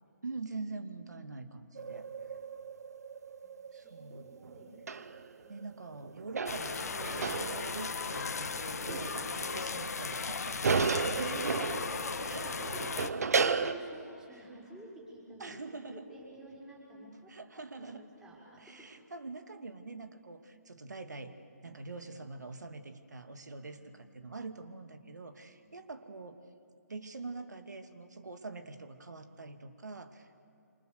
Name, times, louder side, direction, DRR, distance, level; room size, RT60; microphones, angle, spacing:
voice 1, 0.2-2.1 3.7-4.3 5.5-11.7 12.2-12.5 14.3-14.4 15.4-16.0 17.3-18.1 18.6-26.4 26.9-30.5, right 3 dB, 85° right, 8 dB, 2.4 m, -44 dB
sound 1, 1.8-5.6 5.9-13.7, right 5 dB, 65° right, 1.3 m, -35 dB
voice 2, 3.4-4.7 5.0-5.1 5.4-5.7 8.6-9.2 12.1-15.5 15.9-18.9 23.6-24.3 25.6-25.7, right 2 dB, 5° right, -6 dB, 5.5 m, -52 dB
sound 2, 6.5-13.1, left 5 dB, 65° left, 1.5 m, -37 dB
28.5 x 26.0 x 6.8 m, 2.6 s
hypercardioid pair, 160°, 9 cm